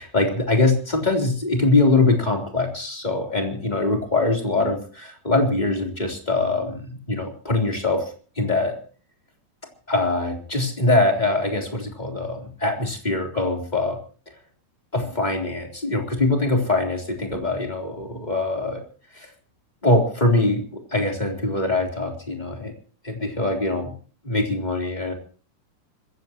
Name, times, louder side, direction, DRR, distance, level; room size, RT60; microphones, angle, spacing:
voice 1, 0.0-8.0 8.4-8.8 9.9-14.0 14.9-18.8 19.1-19.3 19.8-22.7 23.0-23.9 24.2-25.1, left 2 dB, 10° left, 1 dB, 3.4 m, -23 dB
26.0 x 15.5 x 3.1 m, 0.41 s
omnidirectional pair, 4.4 m